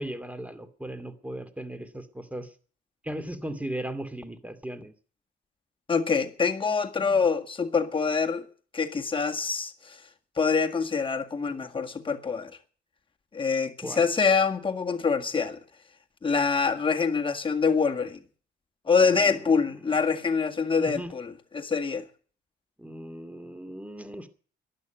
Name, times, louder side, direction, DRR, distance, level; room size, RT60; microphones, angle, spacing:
voice 1, 0.0-2.5 3.0-4.9 13.8-14.1 19.0-20.0 20.5-21.1 22.8-24.3, right 1 dB, 5° right, 2.5 m, -37 dB
voice 2, 5.9-8.5 8.7-10.0 10.4-12.5 13.3-15.6 16.2-18.2 18.9-22.0, left 5 dB, 25° left, 1.9 m, -25 dB
12.5 x 11.5 x 9.1 m
cardioid pair, 90°, 20 cm